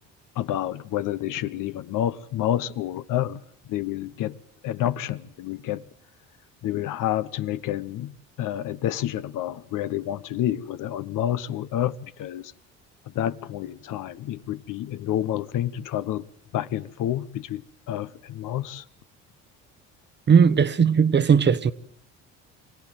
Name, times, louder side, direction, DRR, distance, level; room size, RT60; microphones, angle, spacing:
voice 1, 0.4-3.4 3.7-4.4 4.6-5.8 6.6-8.1 8.4-12.5 13.1-16.2 16.5-17.6 17.9-18.8, left 12 dB, 65° left, 1.1 m, -29 dB
voice 2, 20.3-21.7, right 6 dB, 30° right, 1.0 m, -18 dB
25.0 x 17.0 x 9.2 m
supercardioid pair, 85°, 35 cm